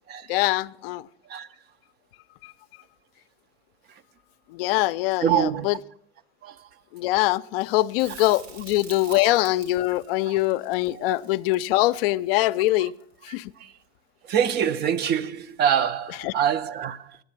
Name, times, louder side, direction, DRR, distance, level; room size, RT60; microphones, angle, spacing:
voice 1, 0.3-1.1 2.4-2.5 4.5-5.8 6.9-12.9 13.2-13.5 16.2-16.3, left 17 dB, 60° left, 0.5 m, -23 dB
voice 2, 5.2-5.7 6.4-6.7 8.1-8.2 9.1-9.4 10.2-10.4 10.9-11.1 13.3-13.7 14.2-17.2, right 9 dB, 30° right, 0.5 m, -26 dB
Crackle, 8.0-13.1 15.9-16.0, right 5 dB, 70° right, 3.0 m, -47 dB
10.5 x 9.1 x 7.4 m
hypercardioid pair, 115°, 32 cm